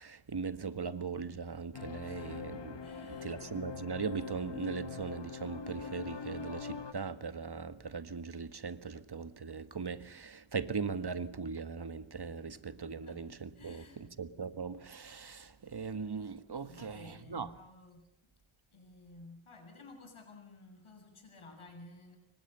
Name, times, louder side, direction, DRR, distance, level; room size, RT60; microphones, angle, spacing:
voice 1, 0.0-2.8 3.1-17.5, right 5 dB, 50° right, 1.7 m, -39 dB
sound 1, 1.7-6.9, left 6 dB, 60° left, 1.8 m, -43 dB
voice 2, 2.0-2.4 2.8-3.4 13.0-13.2 13.5-14.1 16.6-18.1 18.7-22.2, left 2 dB, 80° left, 7.8 m, -54 dB
27.5 x 24.0 x 6.9 m
wide cardioid pair, 65°, 49 cm